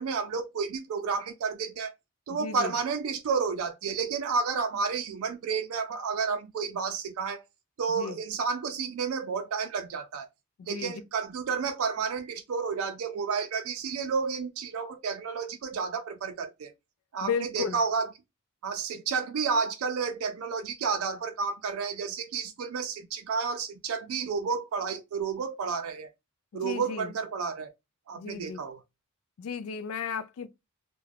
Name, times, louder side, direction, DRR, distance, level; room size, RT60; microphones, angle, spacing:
voice 1, 0.0-1.9 2.3-7.4 7.8-10.3 10.6-16.7 17.1-18.1 18.6-26.1 26.5-27.7 28.1-28.8, right 5 dB, 80° right, 0.4 m, -31 dB
voice 2, 2.3-2.7 7.9-8.2 10.6-11.0 17.2-17.8 26.5-27.1 28.2-28.6 29.4-30.5, left 6 dB, 75° left, 0.3 m, -34 dB
2.3 x 2.1 x 3.2 m
head